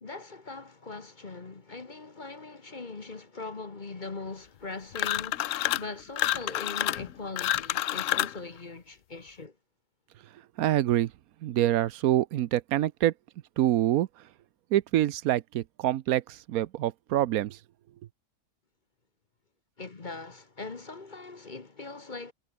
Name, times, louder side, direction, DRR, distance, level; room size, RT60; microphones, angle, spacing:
voice 1, 0.0-5.5 5.8-9.5 19.8-22.3, left 3 dB, 30° left, 1.4 m, -41 dB
sound 1, 4.9-5.9 6.2-8.4, left 13 dB, 65° left, 0.9 m, -28 dB
voice 2, 10.6-11.1 11.4-13.1 13.6-14.1 14.7-17.6, right 13 dB, 70° right, 1.1 m, -26 dB
omnidirectional pair, 1.6 m